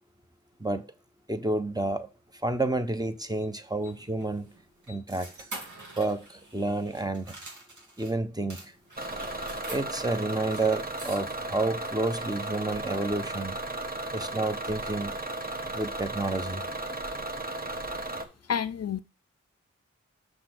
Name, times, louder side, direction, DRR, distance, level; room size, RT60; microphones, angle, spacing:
voice 1, 0.6-0.9 1.3-2.1 2.4-4.5 4.9-5.3 6.0-7.3 8.0-8.7 9.7-13.6 14.1-15.2 15.7-16.6, right 2 dB, 15° right, 1.1 m, -30 dB
sound 1, 3.4-8.1 8.5-11.6, right 2 dB, 80° right, 3.0 m, -46 dB
Bus / Engine, 9.0-18.2, right 2 dB, 30° right, 1.4 m, -35 dB
voice 2, 18.5-19.0, left 7 dB, 55° left, 0.5 m, -29 dB
6.5 x 5.9 x 6.1 m
cardioid pair, 45°, 30 cm